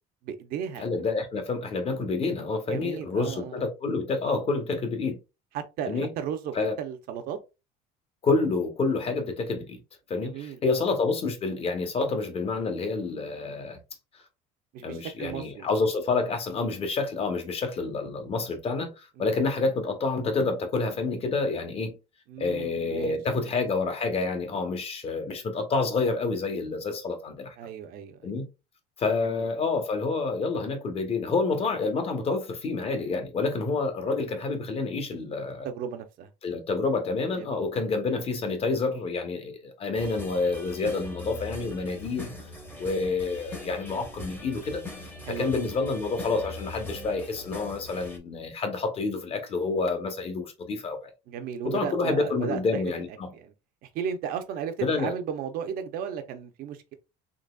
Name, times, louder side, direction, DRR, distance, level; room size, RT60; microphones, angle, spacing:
voice 1, 0.2-0.9 2.7-3.6 5.5-7.4 10.2-10.8 14.7-15.7 19.2-19.3 22.3-23.5 27.6-28.3 29.2-29.5 35.6-36.3 37.4-37.6 45.3-45.6 51.3-52.8 53.1-53.5 53.8-56.9, right 8 dB, 60° right, 0.7 m, -35 dB
voice 2, 0.8-5.2 5.9-6.1 6.5-6.8 8.2-9.8 10.1-13.8 14.8-18.9 19.2-22.0 22.4-27.5 28.2-28.4 29.0-35.7 36.4-42.3 42.8-44.8 45.3-51.0 51.6-53.3 54.8-55.1, left 3 dB, 35° left, 1.1 m, -28 dB
sound 1, 39.9-48.2, left 2 dB, 10° left, 0.9 m, -41 dB
4.0 x 2.9 x 2.3 m
cardioid pair, 125°, 17 cm